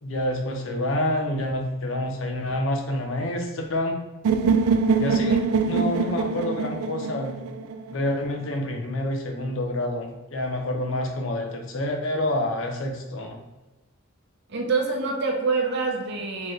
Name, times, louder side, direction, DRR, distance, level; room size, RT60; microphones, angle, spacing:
voice 1, 0.0-4.0 5.0-7.4 7.9-13.4, left 1 dB, 65° left, 3 dB, 0.7 m, -28 dB
sound 1, 4.2-8.2, right 5 dB, 85° right, 0.3 m, -24 dB
voice 2, 14.5-16.5, right 4 dB, 50° right, 0 dB, 0.7 m, -26 dB
4.5 x 3.0 x 3.1 m, 1.1 s
head